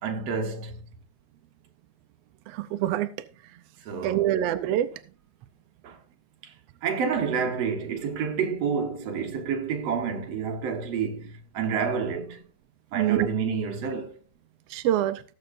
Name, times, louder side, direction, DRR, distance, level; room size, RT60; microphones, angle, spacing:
voice 1, 0.0-0.8 3.9-4.3 5.8-6.0 6.4-6.5 6.8-12.4 12.9-14.2, right 6 dB, 60° right, 2.4 m, -29 dB
voice 2, 2.5-3.1 4.0-4.9 12.9-13.3 14.7-15.2, right 12 dB, 80° right, 1.4 m, -25 dB
19.0 x 7.7 x 2.6 m
omnidirectional pair, 3.6 m